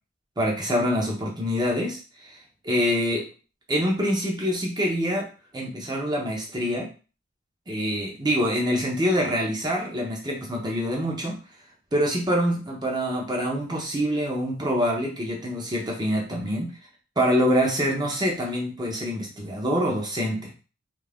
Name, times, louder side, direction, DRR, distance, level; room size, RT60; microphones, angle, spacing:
voice 1, 0.4-2.0 2.3-2.4 2.6-3.2 3.7-5.3 5.5-6.9 7.7-11.4 11.9-16.7 17.2-20.5, equal, 20° right, -1 dB, 0.7 m, -25 dB
2.6 x 2.5 x 3.4 m, 0.35 s
head